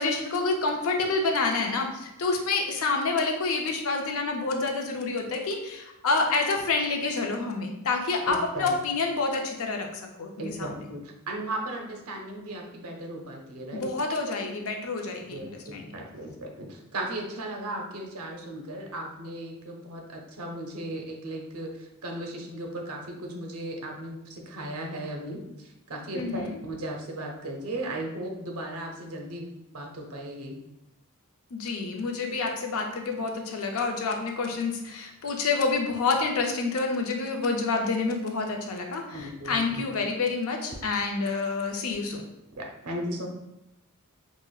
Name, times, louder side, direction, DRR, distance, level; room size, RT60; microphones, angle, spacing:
voice 1, 0.0-10.7 13.7-15.9 26.1-26.6 31.5-42.2, left 3 dB, 65° left, 2 dB, 0.5 m, -28 dB
voice 2, 8.3-8.8 10.4-13.9 15.3-30.6 39.1-39.8 42.6-43.3, right 1 dB, 80° right, 1 dB, 0.6 m, -36 dB
4.8 x 2.0 x 2.3 m, 0.90 s
head